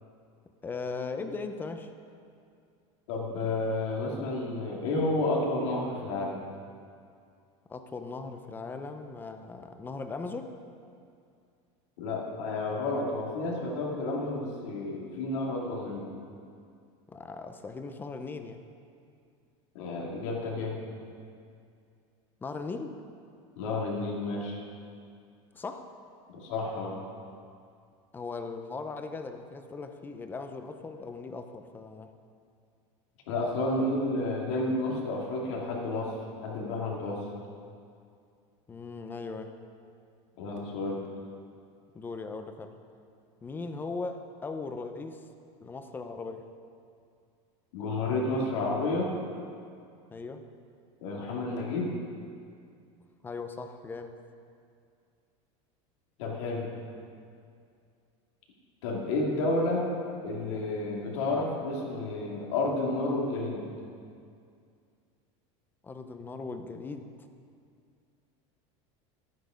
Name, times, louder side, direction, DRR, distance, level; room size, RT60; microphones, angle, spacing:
voice 1, 0.6-1.9 7.7-10.5 17.1-18.6 22.4-22.9 25.5-25.9 28.1-32.1 33.8-33.9 38.7-39.5 41.9-42.7 43.4-45.2 45.6-46.4 50.1-50.4 53.2-54.2 65.8-67.1, left 4 dB, 15° left, 7 dB, 0.6 m, -38 dB
voice 2, 3.1-6.4 12.0-16.1 19.7-20.8 23.6-24.6 26.3-27.0 33.3-36.1 36.4-37.2 40.4-41.0 47.7-49.1 51.0-51.9 56.2-56.7 58.8-59.9 60.2-63.6, left 2 dB, 75° left, -2 dB, 2.5 m, -31 dB
11.5 x 9.3 x 5.1 m, 2.4 s
supercardioid pair, 150°, 16 cm